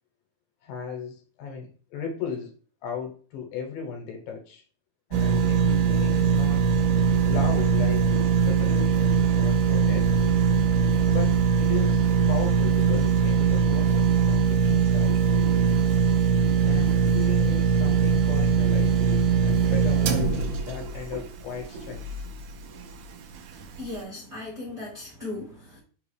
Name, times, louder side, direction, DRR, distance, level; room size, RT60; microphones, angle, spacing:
voice 1, 0.6-2.5 2.8-4.6 5.1-6.6 7.3-8.1 8.5-10.2 11.1-15.2 16.6-22.0, left 6 dB, 75° left, 1 dB, 2.6 m, -36 dB
sound 1, 5.1-22.3 22.8-22.9, right 6 dB, 80° right, 1.9 m, -21 dB
voice 2, 23.5-25.8, left 2 dB, 35° right, -6 dB, 1.3 m, -37 dB
5.6 x 2.4 x 3.2 m, 0.40 s
omnidirectional pair, 4.2 m